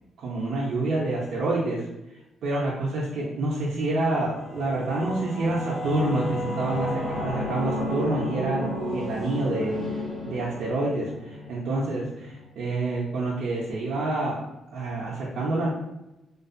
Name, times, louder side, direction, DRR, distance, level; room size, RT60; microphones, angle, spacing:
voice 1, 0.2-1.8 2.4-14.4 14.7-15.7, right 2 dB, 70° right, -5 dB, 0.5 m, -28 dB
Singing / Musical instrument, 3.9-13.0, left 1 dB, 75° left, 0.8 m, -33 dB
2.5 x 2.3 x 2.5 m, 0.95 s
cardioid pair, 90°, 0 cm